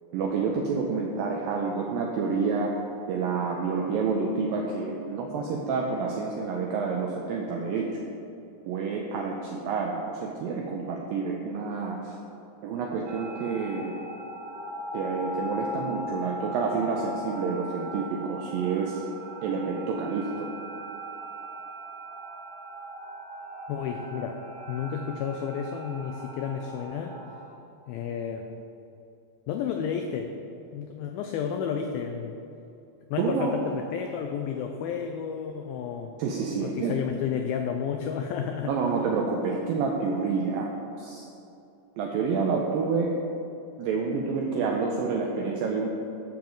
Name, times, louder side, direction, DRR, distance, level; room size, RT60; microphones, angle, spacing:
voice 1, 0.1-2.7 3.1-7.9 8.7-12.2 12.6-14.0 14.9-19.0 19.4-20.5 33.2-33.7 36.2-37.0 38.7-40.7 41.0-41.3 42.0-43.1 43.8-45.9, right 5 dB, 85° right, 0 dB, 2.0 m, -28 dB
sound 1, 13.1-27.5, equal, 60° right, 2.5 m, -39 dB
voice 2, 23.7-24.4 24.7-27.2 27.9-28.5 29.5-30.3 30.7-32.4 33.1-36.1 36.6-38.9, left 7 dB, 90° left, 4 dB, 2.1 m, -31 dB
11.5 x 7.2 x 3.8 m, 2.7 s
omnidirectional pair, 4.8 m